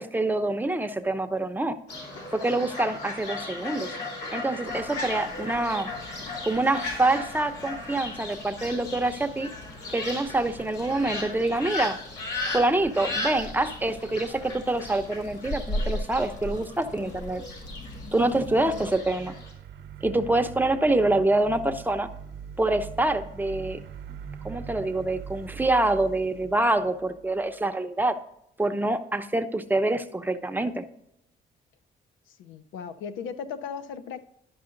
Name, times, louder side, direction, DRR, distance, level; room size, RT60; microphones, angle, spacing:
voice 1, 0.0-1.8 2.3-4.0 4.3-5.9 6.4-9.5 9.9-12.0 12.5-17.4 18.1-19.4 20.0-22.1 22.6-23.8 24.4-28.2 28.6-30.8, right 2 dB, 10° right, 7 dB, 0.8 m, -26 dB
Fowl, 1.9-19.5, left 2 dB, 65° left, 3.7 m, -37 dB
sound 1, 4.7-19.0, left 1 dB, 40° left, 0.7 m, -40 dB
sound 2, 17.3-27.5, right 7 dB, 70° right, 0.9 m, -42 dB
voice 2, 32.3-34.3, left 6 dB, 90° left, 12 dB, 0.6 m, -37 dB
11.5 x 5.5 x 3.8 m, 0.79 s
cardioid pair, 90°, 20 cm